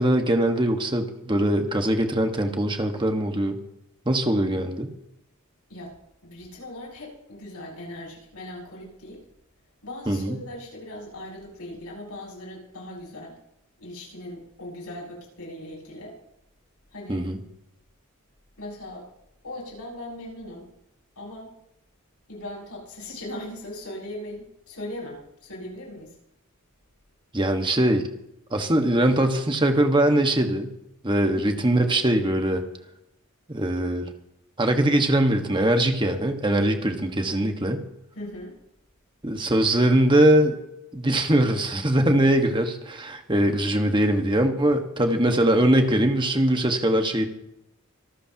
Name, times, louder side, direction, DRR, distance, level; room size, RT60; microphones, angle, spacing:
voice 1, 0.0-3.6 4.0-4.9 10.1-10.4 17.1-17.4 27.3-28.0 28.5-30.7 31.0-32.6 33.5-34.1 34.6-37.8 39.2-40.6 40.9-47.3, right 1 dB, 20° right, 5 dB, 1.5 m, -22 dB
voice 2, 6.2-9.2 9.8-13.4 13.8-16.2 16.9-17.2 18.6-19.1 19.4-20.7 21.2-21.5 22.3-26.2 31.2-31.6 38.1-38.6, left 1 dB, 80° left, -3 dB, 6.9 m, -39 dB
26.0 x 13.5 x 2.9 m, 0.85 s
head